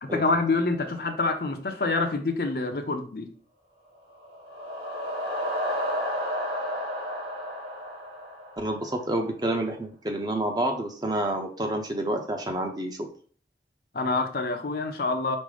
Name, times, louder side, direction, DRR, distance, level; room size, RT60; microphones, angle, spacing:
voice 1, 0.0-3.3 13.9-15.4, left 3 dB, 55° left, 0.6 m, -26 dB
sound 1, 4.1-9.0, equal, 80° right, 2.3 m, -32 dB
voice 2, 8.6-13.1, right 1 dB, 25° right, 0.7 m, -29 dB
5.3 x 2.1 x 4.8 m
head